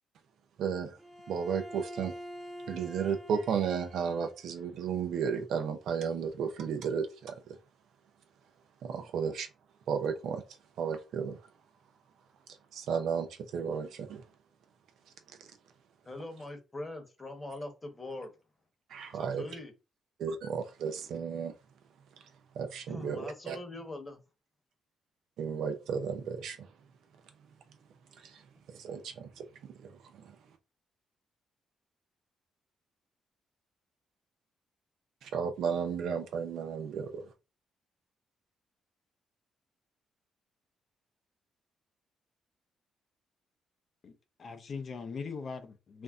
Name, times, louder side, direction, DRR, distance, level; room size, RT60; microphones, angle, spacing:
voice 1, 0.6-1.0 1.3-2.1 2.7-7.6 8.8-9.5 9.9-10.4 10.8-11.4 12.7-13.3 13.5-14.2 18.9-19.4 20.2-21.5 22.5-23.6 25.4-26.7 28.2-28.4 28.7-30.3 35.2-37.3, right 6 dB, 80° right, 0.5 m, -33 dB
Bowed string instrument, 1.0-4.4, equal, 15° right, 0.8 m, -46 dB
voice 2, 16.0-18.3 19.2-19.7 22.9-24.2, left 2 dB, 25° left, 1.0 m, -42 dB
voice 3, 44.0-46.0, left 5 dB, 55° left, 0.6 m, -41 dB
2.6 x 2.0 x 3.5 m
cardioid pair, 70°, 0 cm